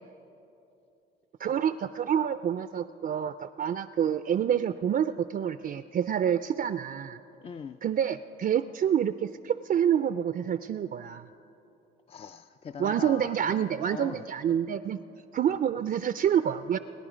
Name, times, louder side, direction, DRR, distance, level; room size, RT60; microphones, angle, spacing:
voice 1, 1.4-7.2 7.8-11.2 12.8-15.0 15.3-16.8, right 9 dB, 45° right, 12 dB, 0.4 m, -27 dB
voice 2, 7.4-7.8 12.1-13.4 13.9-14.6, left 6 dB, 30° left, 10 dB, 0.4 m, -41 dB
27.0 x 10.5 x 5.0 m, 2.9 s
cardioid pair, 90°, 20 cm